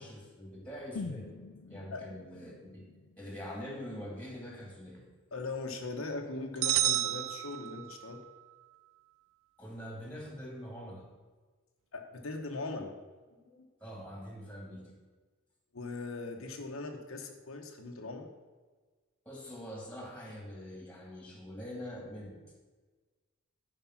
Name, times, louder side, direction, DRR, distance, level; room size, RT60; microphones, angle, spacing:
voice 1, 0.0-1.3 1.7-2.8 3.2-5.0 9.6-11.1 13.8-14.9 19.3-22.4, equal, 5° left, 0 dB, 2.4 m, -44 dB
sound 1, 1.0-4.9 5.2-5.3, left 4 dB, 90° left, 0.5 m, -46 dB
voice 2, 5.3-8.3 11.9-13.0 13.5-13.6 15.7-18.3, left 3 dB, 70° left, 3 dB, 1.0 m, -40 dB
sound 2, 6.6-8.2, right 14 dB, 70° right, 0.4 m, -30 dB
11.0 x 5.3 x 5.8 m, 1.4 s
head